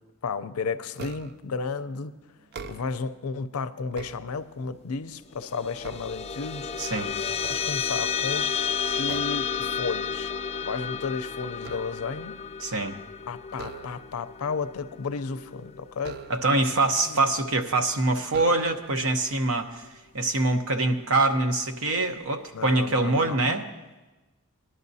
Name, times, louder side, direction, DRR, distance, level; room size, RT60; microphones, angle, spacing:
voice 1, 0.2-2.1 2.7-6.7 7.5-8.5 9.0-10.3 10.6-12.4 13.3-16.2 17.1-17.2 22.5-23.4, left 4 dB, 80° left, 12 dB, 0.5 m, -33 dB
sound 1, 1.0-1.5 2.4-3.2 3.7-4.8 5.3-6.8 7.3-8.3 9.1-9.6 9.9-10.2 10.6-12.3 13.5-14.3 16.0-16.8 17.5-17.6 18.3-19.0, right 5 dB, 50° right, 0.4 m, -43 dB
sound 2, 5.3-16.1, left 7 dB, 30° left, 0.3 m, -32 dB
voice 2, 6.8-7.1 12.6-13.0 16.3-19.8 20.1-23.7, right 2 dB, 70° right, 6 dB, 0.9 m, -24 dB
19.5 x 11.0 x 2.7 m, 1.1 s
head